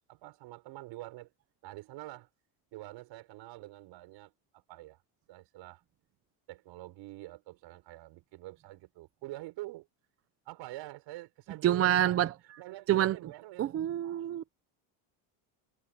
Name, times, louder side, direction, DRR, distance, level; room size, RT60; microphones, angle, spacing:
voice 1, 0.1-1.3 1.6-2.3 2.7-5.0 5.3-5.8 6.5-9.9 10.5-13.7, right 18 dB, 60° right, 5.4 m, -46 dB
voice 2, 11.6-12.3 12.9-13.2 13.6-14.4, right 12 dB, 30° right, 0.6 m, -27 dB
cardioid pair, 150°, 47 cm